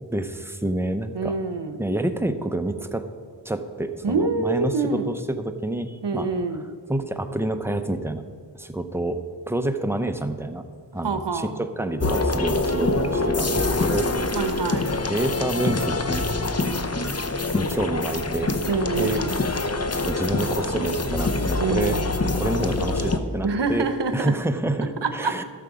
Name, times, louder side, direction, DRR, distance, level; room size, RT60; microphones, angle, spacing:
voice 1, 0.0-1.4 1.8-3.1 3.4-6.3 6.9-8.2 8.5-9.2 9.5-10.7 10.9-14.1 15.1-16.2 17.5-18.5 19.0-19.2 19.9-22.0 22.3-23.9 24.1-25.4, right 1 dB, 5° right, 8 dB, 0.7 m, -28 dB
voice 2, 1.1-1.8 4.0-5.0 6.0-6.7 11.0-11.6 14.3-14.9 18.7-19.3 21.6-22.0 23.4-24.3 25.0-25.3, right 4 dB, 70° right, 9 dB, 0.9 m, -25 dB
sound 1, 12.0-23.2, left 2 dB, 35° left, 0.8 m, -25 dB
13.0 x 6.8 x 4.9 m, 2.1 s
wide cardioid pair, 40°, 43 cm